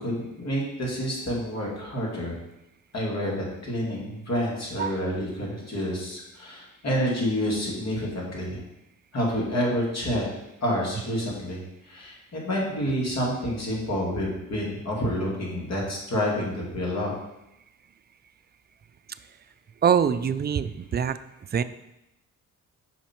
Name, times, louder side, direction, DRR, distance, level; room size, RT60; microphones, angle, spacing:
voice 1, 0.0-2.4 2.9-8.6 9.1-10.3 10.6-17.1, equal, 55° left, -3 dB, 2.5 m, -28 dB
voice 2, 19.8-21.2 21.5-21.6, right 7 dB, 30° right, 13 dB, 0.4 m, -23 dB
5.7 x 5.2 x 4.4 m, 0.88 s
cardioid pair, 80°, 32 cm